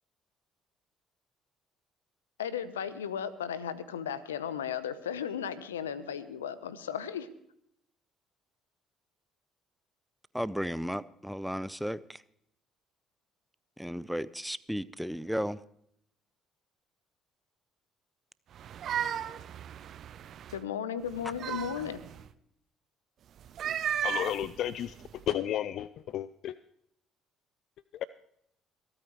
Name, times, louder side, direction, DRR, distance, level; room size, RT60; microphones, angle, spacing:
voice 1, 2.4-7.3 20.5-22.0, left 8 dB, 85° left, 0.7 m, -35 dB
voice 2, 10.3-12.0 13.8-15.6, equal, ahead, 0.6 m, -34 dB
sound 1, 18.5-20.6 21.1-22.3 23.4-25.2, right 9 dB, 55° right, 0.6 m, -35 dB
voice 3, 24.0-26.5 27.9-28.0, left 11 dB, 60° left, 0.4 m, -33 dB
26.5 x 8.9 x 3.1 m
figure-of-eight pair, 50°, 0 cm